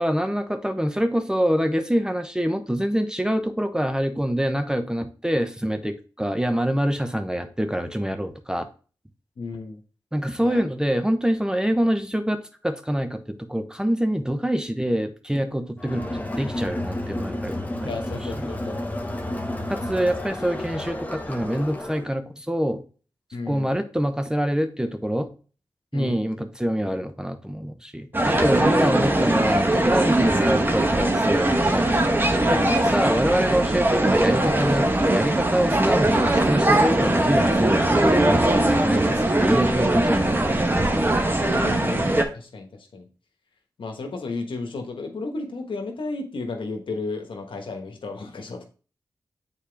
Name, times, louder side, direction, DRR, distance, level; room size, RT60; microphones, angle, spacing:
voice 1, 0.0-8.7 10.1-18.0 18.3-18.5 19.7-22.8 23.5-25.3 25.9-31.9 32.5-40.7, equal, 10° right, 7 dB, 0.9 m, -25 dB
voice 2, 9.4-9.8 10.4-10.6 17.8-18.8 19.1-19.4 23.3-23.7 25.9-26.3 28.1-28.8 32.4-32.7 41.4-43.1 43.8-48.6, left 3 dB, 80° left, 4 dB, 1.2 m, -34 dB
Crowd, 15.8-22.1, left 1 dB, 20° left, 1.1 m, -31 dB
sound 1, 28.1-42.2, right 1 dB, 25° right, 1.1 m, -21 dB
7.4 x 4.2 x 3.4 m, 0.37 s
cardioid pair, 50°, 9 cm